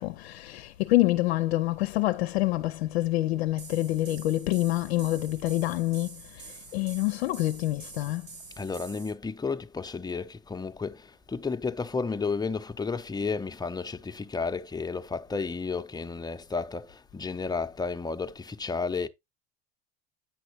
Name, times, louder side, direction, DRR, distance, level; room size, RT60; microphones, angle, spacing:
voice 1, 0.0-8.3, left 17 dB, 80° left, 0.5 m, -27 dB
sound 1, 3.6-9.1, right 4 dB, 75° right, 4.9 m, -47 dB
voice 2, 8.6-19.1, left 4 dB, 15° left, 0.7 m, -32 dB
9.3 x 5.9 x 3.0 m
hypercardioid pair, 80°, 31 cm